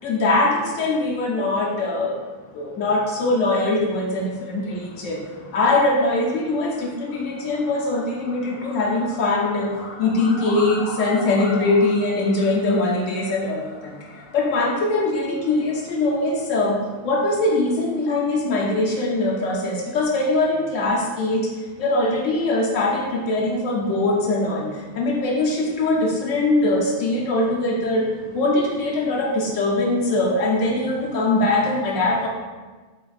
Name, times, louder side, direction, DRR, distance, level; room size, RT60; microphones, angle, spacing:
voice 1, 0.0-2.2 2.5-32.3, left 2 dB, 85° left, -3 dB, 1.0 m, -22 dB
4.2 x 2.4 x 3.9 m, 1.3 s
omnidirectional pair, 1.3 m